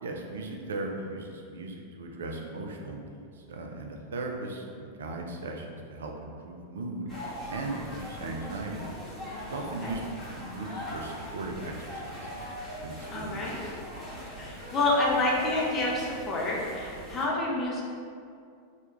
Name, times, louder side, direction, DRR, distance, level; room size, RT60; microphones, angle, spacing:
voice 1, 0.0-7.1 7.5-8.9 9.5-10.0 10.3-12.3 12.8-13.4, right 2 dB, 65° right, 2 dB, 0.4 m, -37 dB
sound 1, 7.1-17.2, equal, 15° right, 1.0 m, -41 dB
voice 2, 13.1-13.6 14.4-17.8, left 2 dB, 25° left, -4 dB, 0.6 m, -28 dB
3.2 x 2.3 x 2.9 m, 2.3 s
figure-of-eight pair, 90°, 0 cm